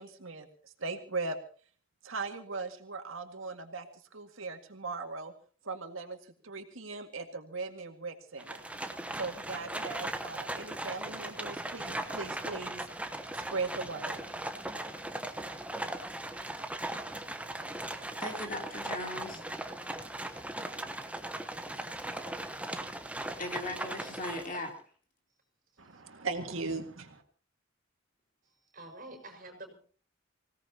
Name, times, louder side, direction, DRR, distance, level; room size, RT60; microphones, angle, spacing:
voice 1, 0.0-1.4 2.0-3.9 4.1-5.3 5.6-8.6 9.2-12.9 13.3-14.2 25.8-27.2, right 3 dB, 90° right, 5 dB, 2.0 m, -39 dB
Livestock farm animals working animals, 8.4-24.8, right 1 dB, 5° right, 0.9 m, -38 dB
voice 2, 17.8-19.4 23.4-24.7, left 2 dB, 40° left, 2 dB, 3.2 m, -39 dB
voice 3, 25.7-26.0 28.4-29.7, right 2 dB, 40° right, 4 dB, 5.3 m, -49 dB
25.5 x 17.0 x 2.9 m, 0.42 s
head